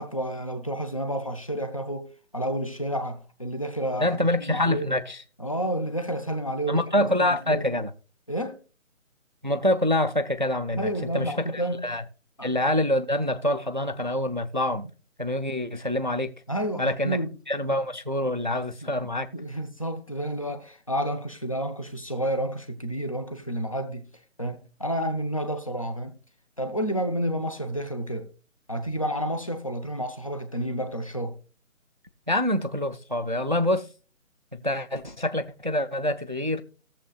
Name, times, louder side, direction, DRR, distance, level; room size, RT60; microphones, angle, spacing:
voice 1, 0.0-4.9 5.4-6.8 7.2-7.6 8.3-8.6 10.7-11.9 12.4-12.5 16.5-17.3 17.6-17.8 18.8-18.9 19.3-24.1 24.4-26.1 26.6-28.3 28.7-31.4, equal, 25° left, 0.7 m, -30 dB
voice 2, 4.0-5.2 6.7-7.9 9.4-12.0 12.4-14.9 15.2-16.3 16.8-17.2 17.5-19.3 32.3-33.9 34.5-36.6, left 1 dB, 35° right, 0.5 m, -26 dB
18.0 x 7.4 x 2.3 m
figure-of-eight pair, 175°, 40 cm